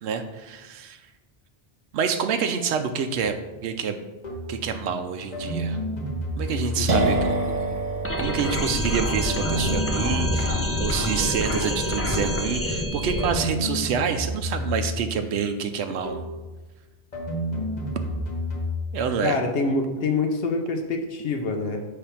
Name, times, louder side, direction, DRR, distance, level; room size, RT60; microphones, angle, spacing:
voice 1, 0.0-1.0 1.9-3.4 3.6-4.0 4.5-5.8 6.4-7.4 8.2-16.2 18.9-19.4, right 6 dB, 80° right, 7 dB, 0.9 m, -27 dB
sound 1, 3.1-3.3 4.2-4.6 5.3-7.2 8.2-8.6 9.2-11.0 12.1-12.5 13.2-15.1 16.0-16.5 17.1-18.9, left 1 dB, 40° left, 1.3 m, -30 dB
voice 2, 6.8-7.1 19.2-21.8, left 3 dB, 65° left, 4 dB, 0.9 m, -26 dB
sound 2, 6.9-14.4, right 2 dB, 45° right, 0.8 m, -30 dB
sound 3, 8.0-13.3, left 1 dB, 15° left, 0.5 m, -27 dB
6.8 x 3.4 x 5.7 m, 1.2 s
omnidirectional pair, 1.1 m